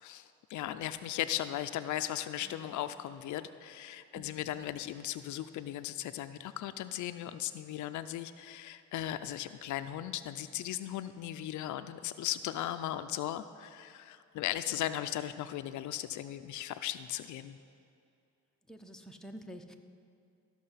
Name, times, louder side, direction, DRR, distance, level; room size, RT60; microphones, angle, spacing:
voice 1, 0.0-17.6, left 12 dB, 75° left, 11 dB, 0.5 m, -37 dB
voice 2, 2.4-2.7 4.2-4.6 14.4-14.5 18.7-19.7, equal, ahead, 3 dB, 0.7 m, -49 dB
14.0 x 6.0 x 5.6 m, 2.6 s
cardioid pair, 90°, 30 cm